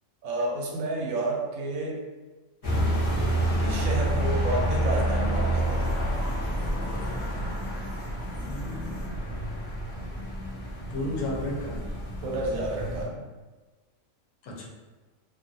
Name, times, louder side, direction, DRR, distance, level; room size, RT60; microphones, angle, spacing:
voice 1, 0.2-2.0 3.6-6.0 12.2-13.2, right 2 dB, 80° right, -2 dB, 1.0 m, -30 dB
sound 1, 2.6-13.0, right 1 dB, 35° left, 0.6 m, -28 dB
voice 2, 8.4-9.1 10.9-12.0 14.4-14.5, left 1 dB, 70° left, -2 dB, 0.9 m, -33 dB
2.4 x 2.3 x 2.5 m, 1.2 s
omnidirectional pair, 1.4 m